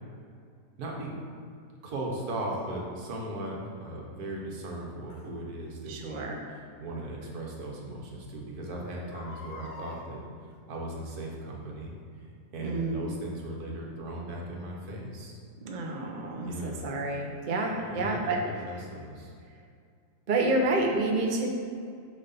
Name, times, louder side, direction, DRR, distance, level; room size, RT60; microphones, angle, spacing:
voice 1, 0.8-1.2 1.8-6.3 6.8-10.2 10.7-11.9 12.5-15.3 16.4-16.8 17.8-19.3, right 1 dB, 70° right, -2 dB, 1.5 m, -37 dB
Crying sobbing, 2.5-2.6 5.1-5.3 6.9-7.0 7.5-7.6 7.8-7.9 8.9-10.0 11.0-11.3 11.9-12.0, left 3 dB, 60° left, 1.1 m, -46 dB
voice 2, 5.9-6.4 12.6-13.1 15.6-18.4 20.3-21.5, right 2 dB, 50° right, 1 dB, 0.6 m, -29 dB
6.7 x 3.2 x 5.5 m, 2.2 s
omnidirectional pair, 1.7 m